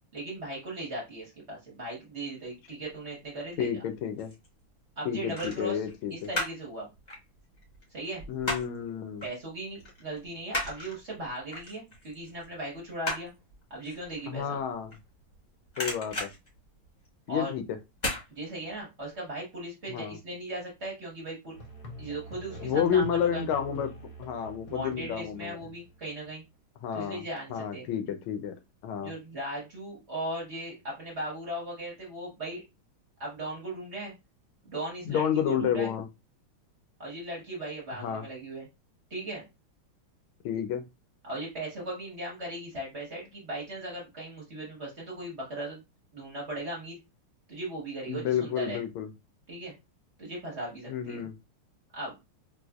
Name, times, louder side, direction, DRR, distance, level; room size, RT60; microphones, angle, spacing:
voice 1, 0.1-3.7 5.0-5.8 6.1-6.9 7.9-8.2 9.2-13.3 13.7-14.6 17.3-17.5 18.3-21.5 22.0-23.4 24.7-26.4 26.9-27.9 29.0-32.6 33.2-34.1 34.6-35.9 37.0-38.7 39.1-39.4 41.2-45.8 46.1-47.0 47.5-48.8 49.5-49.7 50.2-51.3 51.9-52.2, right 1 dB, 40° right, -4 dB, 1.0 m, -38 dB
voice 2, 3.6-4.3 5.0-6.3 8.3-9.2 14.3-14.9 15.8-16.3 17.3-17.6 19.9-20.2 22.6-23.9 24.2-25.6 26.8-27.2 27.5-28.6 28.8-29.1 35.0-36.1 38.0-38.2 40.4-40.8 48.1-49.1 50.9-51.3, left 8 dB, 80° left, 8 dB, 1.4 m, -30 dB
sound 1, 3.8-4.5 5.3-6.7 7.0-8.9 9.2-9.4 9.7-15.4 15.7-17.3 17.9-18.3 18.7-18.8, left 1 dB, 30° left, 0.8 m, -36 dB
Musical instrument, 21.5-26.3, equal, 60° left, 1.0 m, -45 dB
4.1 x 2.5 x 2.3 m, 0.24 s
omnidirectional pair, 2.3 m